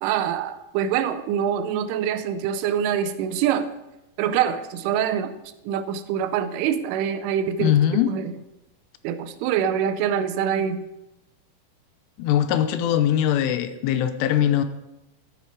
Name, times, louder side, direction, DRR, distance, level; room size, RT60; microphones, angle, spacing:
voice 1, 0.0-3.7 4.2-5.3 5.7-8.3 9.0-10.8, right 8 dB, 85° right, 11 dB, 3.1 m, -25 dB
voice 2, 7.6-8.1 12.2-14.6, left 10 dB, 80° left, 10 dB, 3.1 m, -21 dB
13.5 x 8.6 x 4.7 m, 0.94 s
omnidirectional pair, 5.7 m